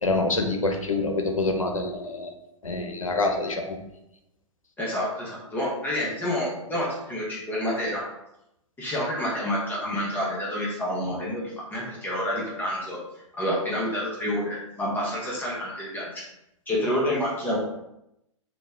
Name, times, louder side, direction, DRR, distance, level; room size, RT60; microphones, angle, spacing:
voice 1, 0.0-2.3 2.6-3.8, left 2 dB, 80° left, 4 dB, 0.6 m, -26 dB
voice 2, 4.8-8.0 8.8-13.0 13.4-16.2 16.7-17.6, equal, 10° left, -5 dB, 0.7 m, -28 dB
2.9 x 2.1 x 3.4 m, 0.85 s
figure-of-eight pair, 110°, 17 cm